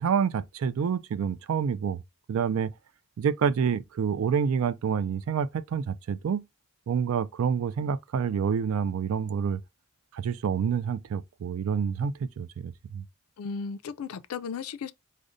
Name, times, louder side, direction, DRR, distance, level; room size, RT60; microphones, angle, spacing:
voice 1, 0.0-2.0 2.3-2.7 3.2-6.4 6.9-9.6 10.1-13.0, right 7 dB, 70° right, 0.3 m, -28 dB
voice 2, 13.4-14.9, left 5 dB, 80° left, 0.4 m, -35 dB
4.9 x 2.0 x 2.5 m
head